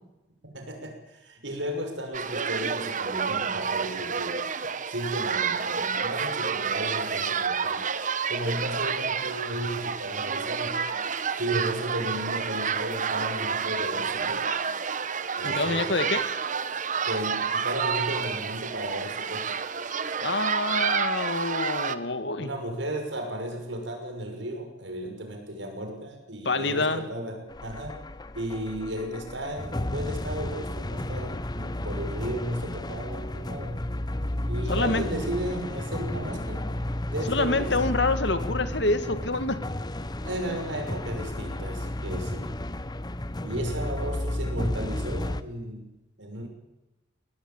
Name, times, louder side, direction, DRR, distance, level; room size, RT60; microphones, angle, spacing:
voice 1, 0.4-4.4 4.9-7.8 8.3-10.8 11.4-14.5 15.4-16.2 17.0-19.5 22.4-28.0 28.3-33.7 34.5-36.8 37.1-38.0 40.2-42.5 43.4-45.9 46.2-46.5, right 1 dB, 90° right, 4 dB, 6.0 m, -34 dB
sound 1, 2.1-21.9, right 6 dB, 45° right, 1.1 m, -29 dB
voice 2, 15.4-16.2 20.2-22.5 26.4-27.1 34.7-35.0 37.3-39.6, left 2 dB, 70° left, 10 dB, 2.1 m, -26 dB
sound 2, 27.5-45.4, left 1 dB, 25° left, 0.9 m, -32 dB
22.0 x 19.0 x 8.8 m, 0.99 s
head